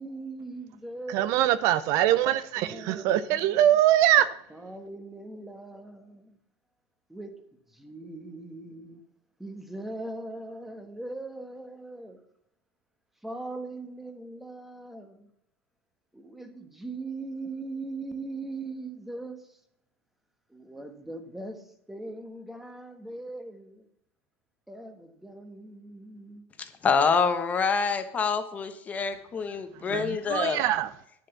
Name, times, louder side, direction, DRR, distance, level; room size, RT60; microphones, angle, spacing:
voice 1, 0.0-1.3 2.6-3.7 4.5-6.4 7.1-7.3 7.7-9.0 9.4-12.2 13.2-15.3 16.1-19.6 20.5-23.9 24.7-26.4, right 2 dB, 5° right, 1.2 m, -40 dB
voice 2, 1.1-4.3 29.9-30.9, right 12 dB, 50° right, 0.5 m, -23 dB
voice 3, 26.6-30.6, left 5 dB, 20° left, 1.0 m, -26 dB
10.0 x 6.8 x 7.0 m
supercardioid pair, 155°, 7 cm